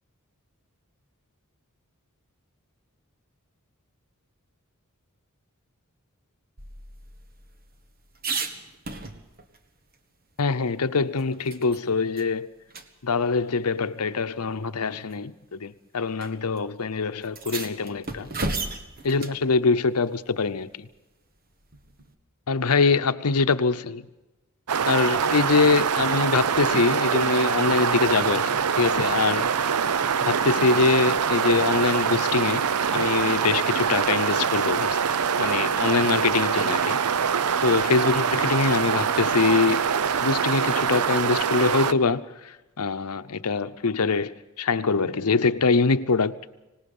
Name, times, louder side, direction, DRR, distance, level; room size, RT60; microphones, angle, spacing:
sound 1, 6.6-9.6 9.9-10.0 10.4-11.8 12.2-12.3 12.7-12.9 13.9-14.0 14.9-15.2 16.2-16.3 16.6-16.7 17.2-19.4 21.7-22.1, right 3 dB, 40° right, 1.5 m, -35 dB
voice 1, 10.4-12.5 13.0-18.3 19.0-20.9 22.5-24.0 24.8-29.5 30.2-32.7 32.9-35.0 35.4-37.0 37.6-39.9 40.2-46.4, left 4 dB, 85° left, 0.8 m, -24 dB
sound 2, 24.7-41.9, right 7 dB, 85° right, 0.6 m, -24 dB
25.0 x 19.0 x 5.5 m
head